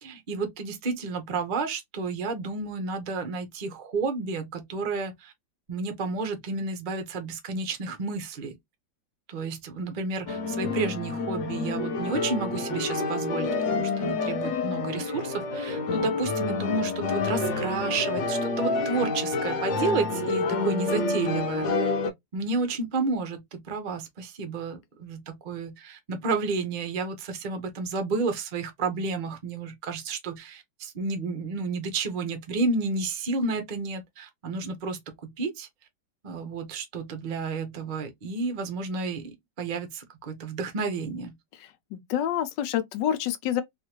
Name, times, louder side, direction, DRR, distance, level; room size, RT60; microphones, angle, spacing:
voice 1, 0.0-5.3 5.7-8.6 9.3-21.9 22.3-35.7 36.2-41.3, right 4 dB, 50° right, 0.5 m, -31 dB
sound 1, 10.3-22.1, left 3 dB, 60° left, 0.8 m, -28 dB
voice 2, 20.2-20.7 41.6-43.6, left 10 dB, 85° left, 1.3 m, -29 dB
3.5 x 2.5 x 2.9 m
omnidirectional pair, 2.0 m